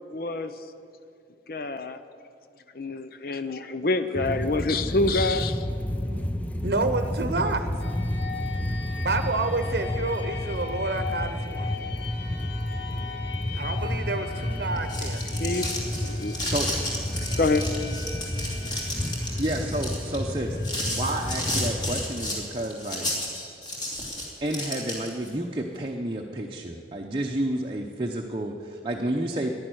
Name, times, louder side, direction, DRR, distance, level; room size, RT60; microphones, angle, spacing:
voice 1, 0.1-0.5 1.5-2.0 2.8-5.6 15.4-16.4 17.4-17.6, left 2 dB, 55° left, 11 dB, 0.7 m, -26 dB
sound 1, 4.1-22.1, left 1 dB, 10° left, 0.5 m, -31 dB
voice 2, 6.6-7.7 9.0-11.7 13.5-15.3, right 3 dB, 60° right, 9 dB, 0.8 m, -29 dB
sound 2, 7.8-23.4, left 5 dB, 75° left, 1.1 m, -40 dB
sound 3, 14.8-25.3, left 1 dB, 25° left, 2.7 m, -32 dB
voice 3, 19.4-20.6 20.9-23.1 24.4-29.6, right 1 dB, 30° right, 0 dB, 0.8 m, -30 dB
11.5 x 11.0 x 9.3 m, 2.4 s
head